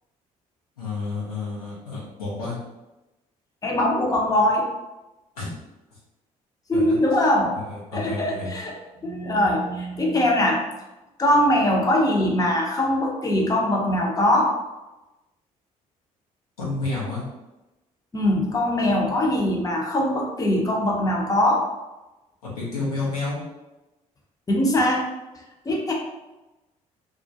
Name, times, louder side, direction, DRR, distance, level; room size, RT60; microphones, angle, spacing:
voice 1, 0.8-2.6 5.4-5.5 5.9-6.0 6.7-7.0 7.6-8.5 16.6-17.2 22.5-23.4, left 3 dB, 90° left, -7 dB, 0.7 m, -30 dB
voice 2, 3.6-4.7 6.7-7.5 7.9-10.6 11.2-14.5 18.1-21.7 24.5-25.0 25.7-25.9, left 1 dB, 20° left, -1 dB, 0.6 m, -22 dB
2.3 x 2.1 x 2.6 m, 1.0 s
hypercardioid pair, 50°, 18 cm